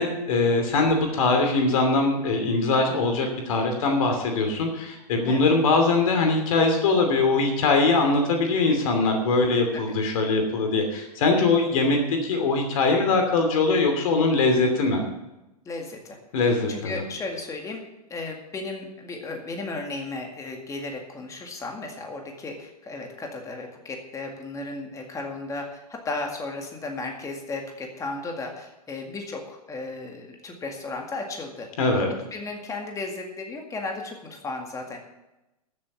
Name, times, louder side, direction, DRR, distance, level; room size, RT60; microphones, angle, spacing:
voice 1, 0.0-15.0 16.3-17.0 31.8-32.1, left 3 dB, 60° left, 4 dB, 2.8 m, -22 dB
voice 2, 15.7-16.2 16.4-17.8 18.1-31.7 32.3-35.0, left 3 dB, 15° left, 2 dB, 2.0 m, -35 dB
13.5 x 7.4 x 7.2 m, 0.96 s
hypercardioid pair, 110°, 20 cm